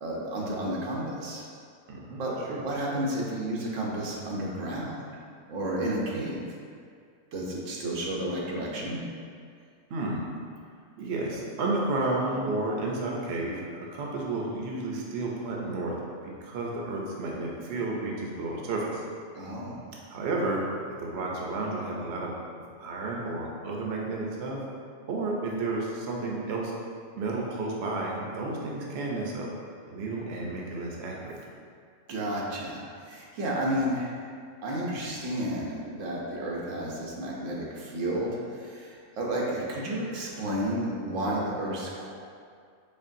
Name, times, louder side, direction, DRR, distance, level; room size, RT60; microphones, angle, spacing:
voice 1, 0.0-1.5 2.2-5.0 5.5-6.4 7.3-9.0 19.3-19.9 32.1-34.2 34.6-42.1, right 1 dB, 90° right, -3 dB, 1.1 m, -31 dB
voice 2, 1.9-2.6 9.9-10.2 11.0-16.0 16.2-19.0 20.1-22.4 22.8-24.6 25.1-26.7 27.2-29.5 29.9-31.4, right 2 dB, 65° right, -2 dB, 0.8 m, -32 dB
4.3 x 3.2 x 2.5 m, 2.2 s
omnidirectional pair, 1.3 m